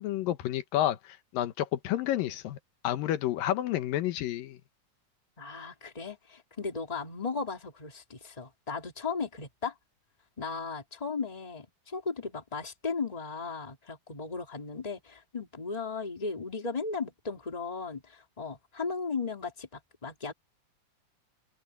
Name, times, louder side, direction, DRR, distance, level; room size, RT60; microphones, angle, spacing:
voice 1, 0.0-2.6 2.8-4.6, left 13 dB, 90° left, 2.8 m, -30 dB
voice 2, 5.4-9.7 10.4-20.3, left 4 dB, 10° left, 2.4 m, -36 dB
open air
omnidirectional pair, 3.9 m